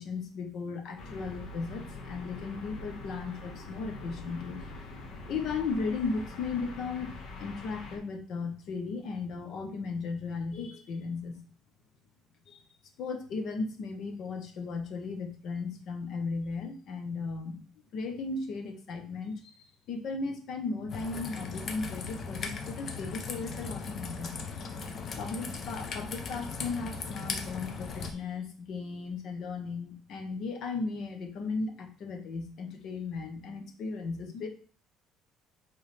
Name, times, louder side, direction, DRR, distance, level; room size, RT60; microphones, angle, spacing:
voice 1, 0.0-4.6 5.2-11.4 12.5-12.7 13.0-17.6 17.9-24.5 25.2-34.5, left 4 dB, 55° left, 5 dB, 1.2 m, -36 dB
sound 1, 1.0-8.0, left 2 dB, 70° left, 1.6 m, -44 dB
Raindrop / Trickle dribble, 20.9-28.1, left 4 dB, 35° left, 0.9 m, -38 dB
8.3 x 3.8 x 3.5 m, 0.41 s
cardioid pair, 160°, 0 cm